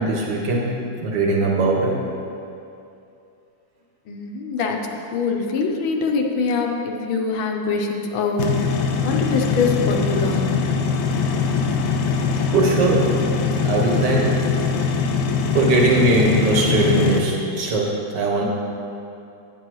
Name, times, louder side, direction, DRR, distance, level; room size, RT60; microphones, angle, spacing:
voice 1, 0.0-2.0 12.5-13.2 13.6-14.4 15.5-18.4, right 2 dB, 65° right, -2 dB, 1.8 m, -20 dB
voice 2, 4.1-8.6 9.0-10.7, left 4 dB, 90° left, 2 dB, 1.6 m, -24 dB
sound 1, 8.4-17.2, left 5 dB, 70° left, 1.2 m, -22 dB
9.8 x 9.4 x 3.1 m, 2.6 s
omnidirectional pair, 2.1 m